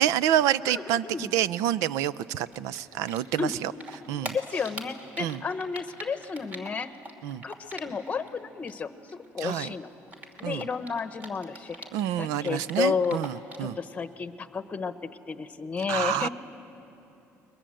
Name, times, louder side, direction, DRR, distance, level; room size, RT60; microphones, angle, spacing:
voice 1, 0.0-3.7 4.1-4.4 5.2-5.4 7.2-7.4 9.4-9.7 10.4-10.7 11.9-13.8 15.9-16.3, right 11 dB, 85° right, 18 dB, 0.5 m, -27 dB
Typing, 2.1-8.3 8.5-12.1 12.4-13.7, right 1 dB, 30° right, 2.7 m, -42 dB
voice 2, 4.2-6.9 7.4-9.9 10.4-11.9 12.2-13.2 13.6-16.3, left 5 dB, 25° left, 10 dB, 1.1 m, -32 dB
29.5 x 22.0 x 7.7 m, 2.9 s
cardioid pair, 135°, 5 cm